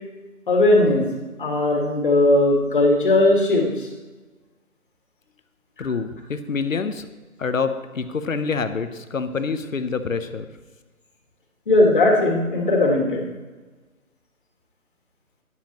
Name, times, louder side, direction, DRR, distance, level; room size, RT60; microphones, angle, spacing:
voice 1, 0.5-1.0 1.4-3.9 5.8-5.9 11.7-13.3, left 2 dB, 35° left, 0 dB, 2.1 m, -18 dB
voice 2, 5.8-7.1 7.4-10.5, left 5 dB, 65° left, 10 dB, 1.1 m, -26 dB
13.0 x 11.0 x 3.1 m, 1.3 s
figure-of-eight pair, 170°, 43 cm